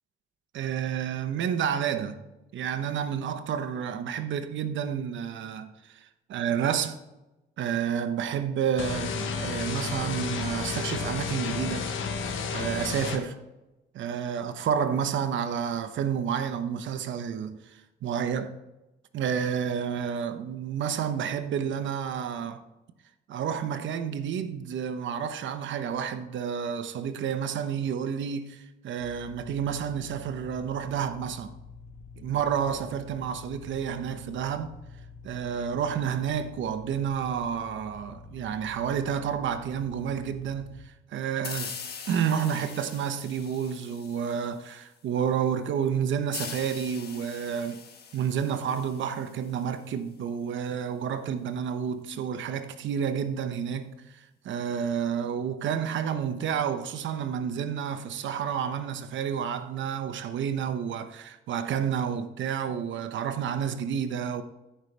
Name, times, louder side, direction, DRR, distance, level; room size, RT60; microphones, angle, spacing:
voice 1, 0.5-2.2 2.5-7.0 7.6-11.9 12.5-13.4 13.9-18.5 19.1-22.6 23.3-31.5 32.2-34.8 35.2-41.8 42.1-47.8 48.1-64.4, right 8 dB, 70° right, 1.0 m, -30 dB
sound 1, 8.8-13.2, left 5 dB, 80° left, 1.2 m, -31 dB
sound 2, 29.0-40.9, left 5 dB, 15° left, 1.7 m, -48 dB
sound 3, 41.4-44.8 46.3-49.8, left 6 dB, 55° left, 1.3 m, -42 dB
14.5 x 5.7 x 3.4 m
cardioid pair, 90°, 20 cm